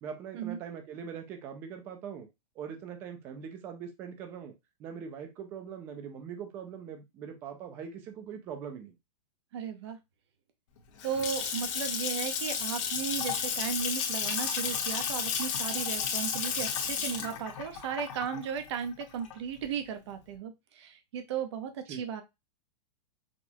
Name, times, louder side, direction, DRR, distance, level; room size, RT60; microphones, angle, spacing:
voice 1, 0.0-2.3 2.6-4.5 4.8-8.9 21.9-22.0, right 7 dB, 10° right, 6 dB, 0.3 m, -42 dB
voice 2, 9.5-10.0 11.0-22.2, right 7 dB, 45° right, 7 dB, 0.8 m, -35 dB
Water tap faucet / Sink (filling or washing) / Splash splatter, 10.8-19.6, left 7 dB, 50° left, 1.3 m, -32 dB
6.0 x 2.3 x 2.7 m, 0.22 s
supercardioid pair, 175°, 21 cm